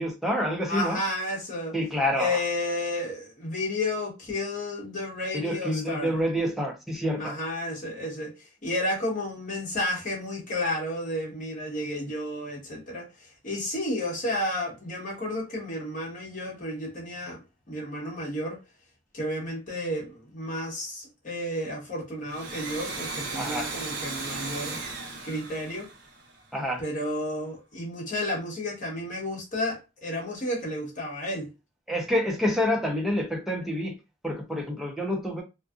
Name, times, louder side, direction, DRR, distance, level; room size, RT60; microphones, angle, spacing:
voice 1, 0.0-1.0 1.7-2.4 5.3-7.3 23.3-23.7 26.5-26.8 31.9-33.9 34.2-35.4, equal, ahead, 0.6 m, -27 dB
voice 2, 0.7-1.7 2.2-6.1 7.2-8.3 8.6-13.1 13.4-18.6 19.1-24.8 25.2-25.9 26.8-31.5, left 1 dB, 40° left, 1.1 m, -32 dB
Domestic sounds home sounds, 22.2-26.7, right 3 dB, 60° right, 0.7 m, -36 dB
2.6 x 2.3 x 2.4 m
head